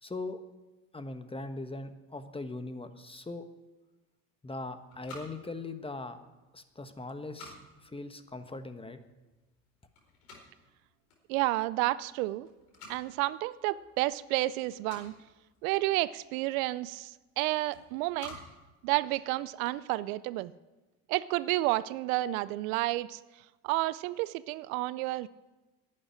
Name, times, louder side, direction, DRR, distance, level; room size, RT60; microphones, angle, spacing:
voice 1, 0.0-0.4 0.9-3.4 4.4-6.2 6.5-7.5 7.8-9.0, left 2 dB, 10° left, 9 dB, 1.3 m, -40 dB
sound 1, 4.5-19.7, left 1 dB, 80° left, 4.6 m, -54 dB
voice 2, 11.3-12.5 12.9-15.1 15.6-18.4 18.8-20.5 21.1-23.2 23.6-25.3, right 18 dB, 65° right, 18 dB, 0.6 m, -30 dB
11.5 x 8.9 x 10.0 m, 1.1 s
hypercardioid pair, 75°, 44 cm